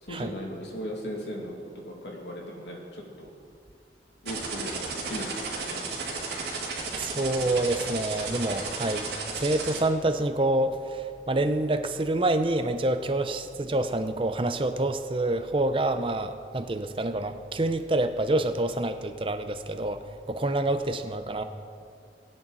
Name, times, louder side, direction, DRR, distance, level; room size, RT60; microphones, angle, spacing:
voice 1, 0.0-3.3 4.2-5.9, equal, 75° left, -1 dB, 2.4 m, -37 dB
sound 1, 4.2-9.8, right 4 dB, 60° right, 2.6 m, -33 dB
voice 2, 6.9-21.4, right 2 dB, 30° right, 8 dB, 0.6 m, -27 dB
20.0 x 8.8 x 4.1 m, 2.3 s
head